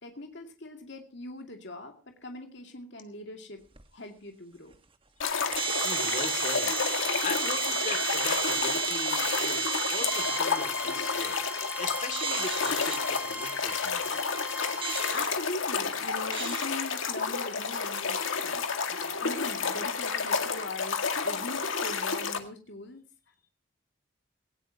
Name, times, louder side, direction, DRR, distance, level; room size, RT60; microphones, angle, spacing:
voice 1, 0.0-3.6 3.9-4.7 15.1-23.1, left 2 dB, 60° left, 4 dB, 2.5 m, -41 dB
sound 1, 3.8-3.9 4.7-4.8 5.3-10.4 12.1-13.0 14.8-15.3 16.3-16.7, right 6 dB, 25° right, 1.4 m, -32 dB
sound 2, 5.2-22.4, left 5 dB, 80° left, 2.0 m, -31 dB
voice 2, 5.8-6.8 7.2-11.5 11.8-14.4, left 3 dB, 40° left, 9 dB, 2.5 m, -39 dB
Bowed string instrument, 10.0-15.2, right 1 dB, 5° right, 1.3 m, -39 dB
18.5 x 18.0 x 2.9 m, 0.32 s
head